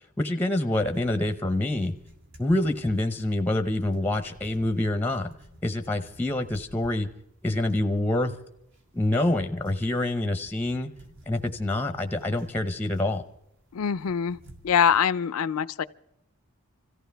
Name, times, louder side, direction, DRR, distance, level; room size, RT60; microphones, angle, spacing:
voice 1, 0.2-1.9 2.4-5.3 5.6-7.1 7.4-8.4 8.9-10.9 11.3-13.2, left 1 dB, 10° left, 0.7 m, -26 dB
sound 1, 0.8-15.0, equal, 60° right, 2.2 m, -52 dB
voice 2, 13.7-14.4 14.6-15.9, left 7 dB, 80° left, 0.5 m, -23 dB
25.5 x 15.0 x 3.4 m
head